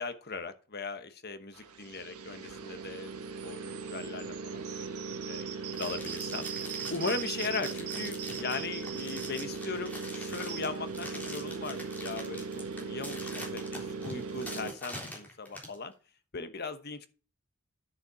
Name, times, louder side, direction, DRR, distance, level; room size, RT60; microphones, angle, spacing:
voice 1, 0.0-3.1 3.4-5.4 5.8-15.9 16.3-17.1, left 4 dB, 45° left, 10 dB, 1.1 m, -39 dB
sound 1, 1.5-14.7, right 5 dB, 85° right, 1.2 m, -38 dB
sound 2, 5.7-15.8, left 1 dB, 5° left, 3.5 m, -44 dB
10.5 x 6.9 x 4.8 m, 0.36 s
head